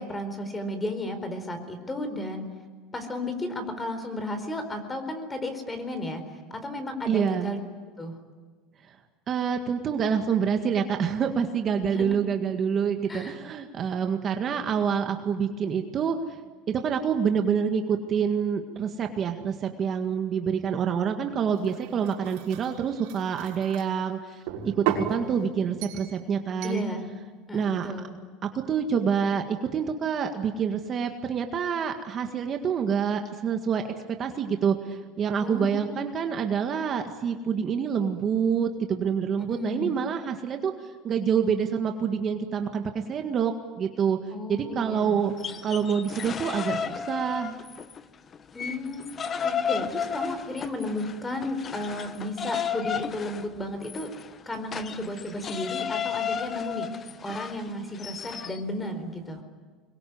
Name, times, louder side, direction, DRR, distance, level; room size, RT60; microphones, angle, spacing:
voice 1, 0.0-2.5 2.9-7.6 8.0-8.2 11.9-12.2 13.1-13.4 26.6-27.1 27.5-28.2 35.4-36.1 39.5-39.9 44.3-45.3 48.5-49.0 49.4-54.1 54.5-59.4, left 1 dB, 15° left, 8 dB, 4.4 m, -34 dB
voice 2, 7.1-7.5 8.9-9.0 9.3-16.4 16.7-26.8 27.5-27.9 28.4-33.8 34.2-40.7 41.0-43.5 43.8-44.2 44.5-45.3 45.6-47.6, right 7 dB, 35° right, 5 dB, 1.9 m, -27 dB
sound 1, 21.6-23.9 24.5-25.1 25.8-26.2 26.6-26.9, right 10 dB, 75° right, 6.1 m, -33 dB
sound 2, 45.3-48.0 48.3-58.6, left 7 dB, 30° left, 1.1 m, -33 dB
25.0 x 22.5 x 9.6 m, 1.5 s
supercardioid pair, 130°, 0 cm